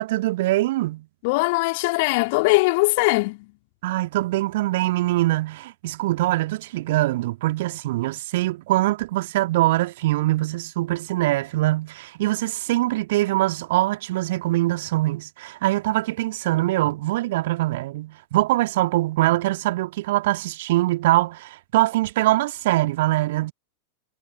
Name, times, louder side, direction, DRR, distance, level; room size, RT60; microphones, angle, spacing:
voice 1, 0.0-1.1 3.8-23.5, right 17 dB, 55° right, 1.8 m, -23 dB
voice 2, 1.2-3.5, left 25 dB, 50° left, 2.8 m, -21 dB
figure-of-eight pair, 90°, 0 cm